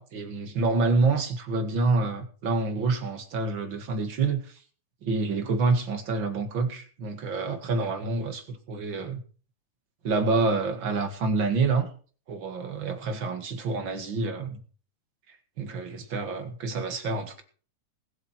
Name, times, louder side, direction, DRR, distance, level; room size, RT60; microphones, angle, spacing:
voice 1, 0.0-4.5 5.0-9.2 10.0-11.9 12.3-14.6 15.6-17.4, right 3 dB, 45° right, 2.1 m, -27 dB
20.5 x 8.0 x 4.4 m
omnidirectional pair, 3.7 m